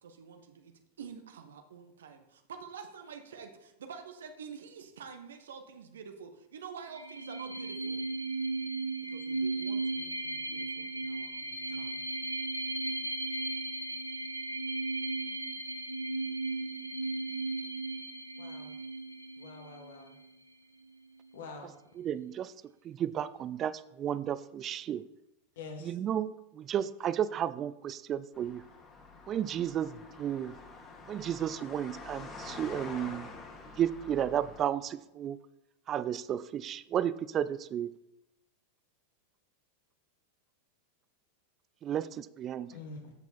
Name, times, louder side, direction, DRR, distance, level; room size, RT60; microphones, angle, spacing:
voice 1, 0.0-8.0 9.0-12.0, right 6 dB, 65° right, 6 dB, 1.2 m, -48 dB
sound 1, 6.9-20.3, right 2 dB, 90° right, 1.1 m, -36 dB
voice 2, 18.4-18.7 19.4-20.1 21.3-21.7 25.6-25.9 42.7-43.1, left 4 dB, 60° left, 3 dB, 2.2 m, -45 dB
voice 3, 21.6-22.5 22.8-25.0 25.8-28.6 29.3-30.5 31.1-33.3 33.8-35.4 35.9-37.9 41.8-42.7, right 10 dB, 30° right, 16 dB, 0.5 m, -33 dB
sound 2, 28.3-34.6, left 3 dB, 25° left, 2.3 m, -47 dB
13.5 x 8.3 x 4.2 m, 0.89 s
figure-of-eight pair, 90°, 0 cm